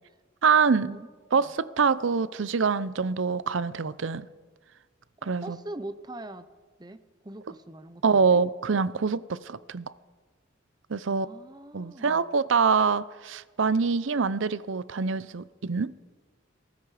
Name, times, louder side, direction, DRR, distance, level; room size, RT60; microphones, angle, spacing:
voice 1, 0.4-1.0 1.3-4.3 5.2-5.6 8.0-9.9 10.9-11.3 11.7-15.9, right 5 dB, 70° right, 0.6 m, -25 dB
voice 2, 5.2-6.5 6.8-8.4 11.1-12.3, right 1 dB, 20° right, 0.7 m, -42 dB
22.0 x 13.5 x 4.9 m
head